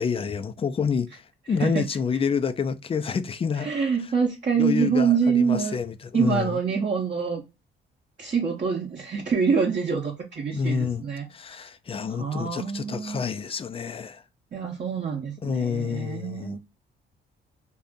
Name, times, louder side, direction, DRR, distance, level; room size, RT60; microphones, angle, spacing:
voice 1, 0.0-3.7 4.6-6.6 10.5-11.0 11.3-14.2 15.4-16.6, left 6 dB, 30° left, 0.4 m, -28 dB
voice 2, 3.6-5.8 6.1-7.4 8.2-11.3 12.1-13.2 14.5-16.6, right 6 dB, 40° right, 0.7 m, -25 dB
2.7 x 2.5 x 3.5 m
cardioid pair, 90°, 20 cm